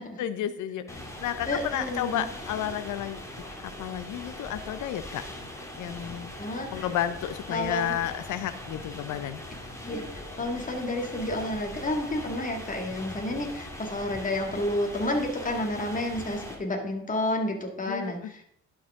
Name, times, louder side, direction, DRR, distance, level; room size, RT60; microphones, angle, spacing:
voice 1, 0.2-5.2 5.7-6.3 6.7-9.4 17.9-18.3, left 11 dB, 80° left, 12 dB, 0.6 m, -32 dB
sound 1, 0.9-16.6, left 1 dB, 10° left, 1.9 m, -41 dB
voice 2, 1.5-2.3 6.4-6.9 7.5-8.0 9.8-18.4, left 1 dB, 25° left, 2 dB, 1.9 m, -30 dB
11.5 x 4.8 x 3.6 m, 0.70 s
cardioid pair, 90°, 30 cm